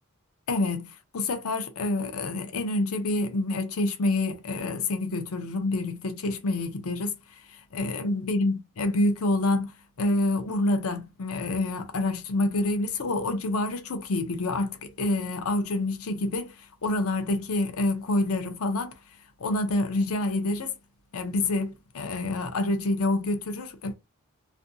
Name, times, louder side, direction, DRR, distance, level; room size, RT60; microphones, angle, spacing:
voice 1, 0.5-18.9 19.4-20.7 21.1-23.9, left 2 dB, 75° left, 0.6 m, -27 dB
2.6 x 2.5 x 2.6 m
head